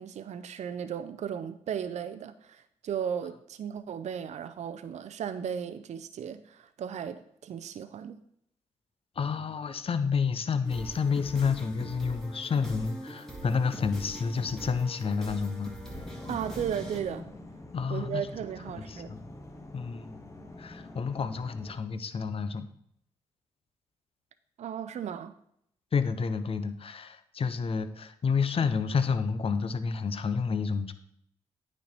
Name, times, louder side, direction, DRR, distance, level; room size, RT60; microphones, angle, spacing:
voice 1, 0.0-8.2 16.3-17.3 17.9-19.2 24.6-25.3, right 8 dB, 60° right, 0.5 m, -35 dB
voice 2, 9.2-15.7 17.7-18.3 18.9-19.3 19.7-20.3 20.6-22.7 25.9-30.9, left 5 dB, 45° left, 0.7 m, -30 dB
sound 1, 10.6-17.0, right 1 dB, 5° left, 2.1 m, -42 dB
sound 2, 15.9-21.7, left 2 dB, 25° left, 1.3 m, -46 dB
9.1 x 4.2 x 4.4 m
supercardioid pair, 55°, 13 cm